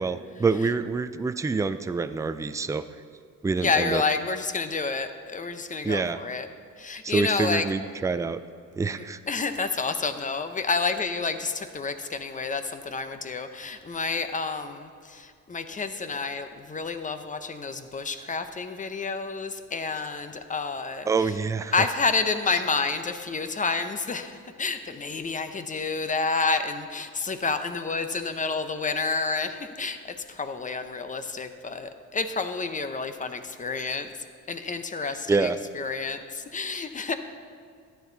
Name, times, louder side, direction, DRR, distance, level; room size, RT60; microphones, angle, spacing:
voice 1, 0.0-2.9 3.4-4.0 5.8-6.2 7.0-8.4 8.8-9.2 21.1-21.7 35.3-35.6, right 4 dB, 10° right, 11 dB, 0.4 m, -26 dB
voice 2, 3.6-6.5 6.8-7.7 9.3-21.3 21.7-30.0 30.3-34.1 34.5-37.1, left 4 dB, 25° left, 9 dB, 0.7 m, -29 dB
12.5 x 9.1 x 4.0 m, 2.3 s
cardioid pair, 90°, 30 cm